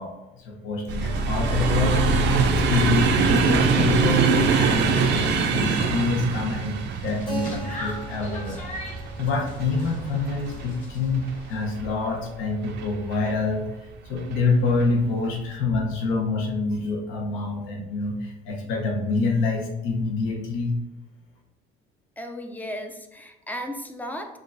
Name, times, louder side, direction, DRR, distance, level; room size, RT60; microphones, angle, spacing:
voice 1, 0.0-2.1 2.5-8.6 9.2-20.7, left 3 dB, 80° left, 1 dB, 0.9 m, -26 dB
sound 1, 0.9-12.0 12.6-13.3 14.2-14.4 14.7-14.8, right 4 dB, 60° right, 0.5 m, -24 dB
sound 2, 6.8-11.7, left 1 dB, 40° left, 1.2 m, -40 dB
Keyboard (musical), 7.3-11.8, right 4 dB, 25° left, 1.0 m, -41 dB
voice 2, 22.2-24.4, equal, 10° left, 4 dB, 0.4 m, -35 dB
6.3 x 2.4 x 2.6 m, 0.94 s
cardioid pair, 135°, 20 cm